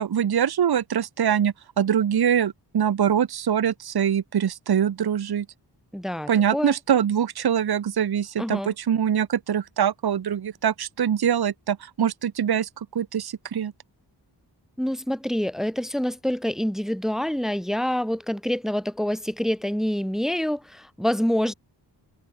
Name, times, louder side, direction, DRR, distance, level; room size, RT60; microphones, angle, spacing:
voice 1, 0.0-5.5 6.3-13.7, right 9 dB, 60° right, 0.9 m, -23 dB
voice 2, 5.9-6.7 8.4-8.7 14.8-21.5, equal, ahead, 1.1 m, -26 dB
wide cardioid pair, 120°, 43 cm